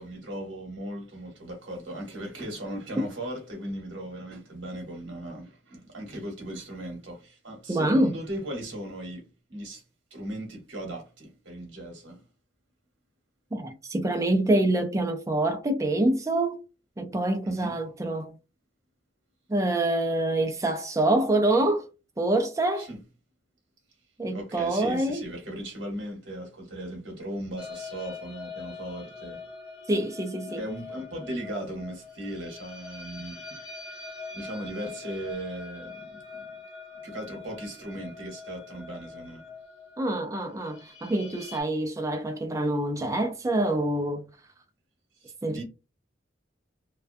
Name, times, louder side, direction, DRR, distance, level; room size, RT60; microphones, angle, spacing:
voice 1, 0.0-9.8 10.1-12.2 17.4-17.7 22.8-23.0 24.3-29.4 30.5-33.7 34.3-36.5 37.0-39.4 45.2-45.6, right 1 dB, 70° right, 1.0 m, -37 dB
voice 2, 7.7-8.1 13.5-16.6 17.0-18.3 19.5-21.9 22.2-22.9 24.2-25.2 29.9-30.6 40.0-44.2 45.4-45.6, right 1 dB, 15° right, 0.3 m, -26 dB
sound 1, 27.6-41.6, left 4 dB, 55° left, 0.7 m, -43 dB
2.3 x 2.2 x 2.5 m
head